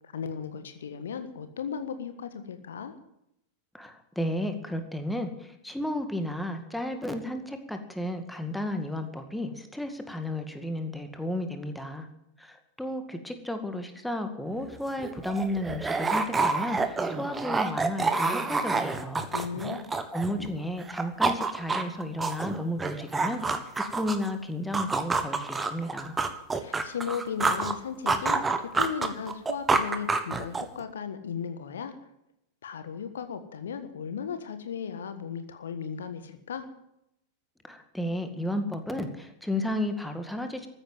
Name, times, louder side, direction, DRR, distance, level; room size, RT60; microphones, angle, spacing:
voice 1, 0.1-2.9 19.3-19.9 26.5-31.9 32.6-36.7, left 7 dB, 65° left, 10 dB, 1.4 m, -36 dB
voice 2, 3.7-12.1 12.4-19.2 20.1-23.4 23.8-26.2 37.6-40.7, left 1 dB, 5° left, 6 dB, 2.0 m, -33 dB
sound 1, 14.7-14.8 15.0-20.5 20.8-24.3 24.7-27.7 28.1-30.8, right 3 dB, 15° right, 1.5 m, -28 dB
14.5 x 10.0 x 9.1 m, 0.80 s
figure-of-eight pair, 90°, 0 cm